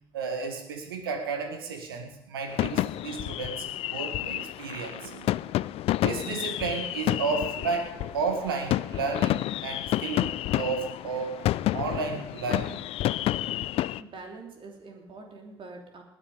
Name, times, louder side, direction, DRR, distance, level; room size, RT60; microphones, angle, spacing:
voice 1, 0.1-5.3 6.0-11.4 11.7-12.8, right 4 dB, 85° right, 6 dB, 1.8 m, -32 dB
sound 1, 2.5-14.0, left 15 dB, 55° left, 0.4 m, -30 dB
voice 2, 13.7-16.0, right 3 dB, 45° right, 2 dB, 3.1 m, -45 dB
19.5 x 9.9 x 5.2 m, 0.84 s
hypercardioid pair, 50°, 12 cm